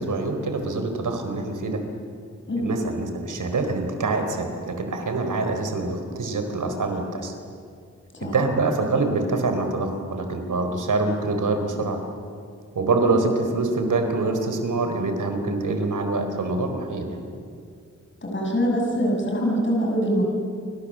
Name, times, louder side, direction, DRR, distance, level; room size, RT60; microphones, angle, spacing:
voice 1, 0.0-1.8 2.6-7.3 8.2-12.0 12.8-17.2, right 3 dB, 85° right, 6 dB, 4.2 m, -25 dB
voice 2, 18.2-20.2, equal, 40° left, -1 dB, 7.0 m, -23 dB
29.0 x 25.5 x 7.6 m, 2.3 s
wide cardioid pair, 120°, 30 cm